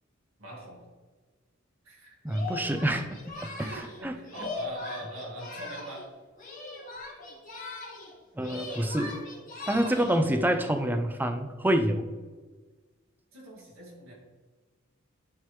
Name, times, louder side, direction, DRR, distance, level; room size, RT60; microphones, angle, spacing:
voice 1, 0.4-0.8 1.8-2.2 3.6-6.1 8.6-8.9 13.3-14.1, right 1 dB, 80° right, -4 dB, 1.9 m, -42 dB
voice 2, 2.2-3.7 4.0-4.2 8.3-9.1 9.7-12.1, right 1 dB, 10° right, 7 dB, 0.4 m, -27 dB
Singing, 2.3-6.1 6.4-8.1 8.4-10.3, left 3 dB, 40° left, 1.7 m, -40 dB
10.0 x 3.6 x 3.2 m, 1.3 s
head